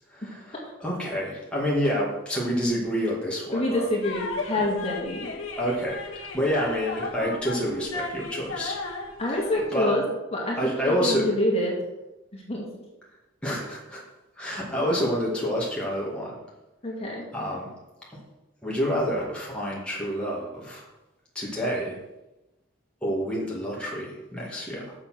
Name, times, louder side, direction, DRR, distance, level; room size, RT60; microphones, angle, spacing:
voice 1, 0.1-3.9 4.6-4.7 5.6-8.8 9.3-10.0 10.6-11.3 13.4-14.0 14.4-16.4 17.3-17.7 18.1-18.2 18.6-20.8 21.3-22.0 23.0-24.9, equal, 5° left, -5 dB, 2.1 m, -28 dB
voice 2, 3.5-5.3 9.2-10.0 10.3-11.8 12.3-12.7 16.8-17.3, left 1 dB, 30° left, -3 dB, 2.1 m, -27 dB
sound 1, 4.0-9.6, left 3 dB, 75° left, 1.5 m, -35 dB
7.3 x 6.7 x 5.9 m, 1.0 s
head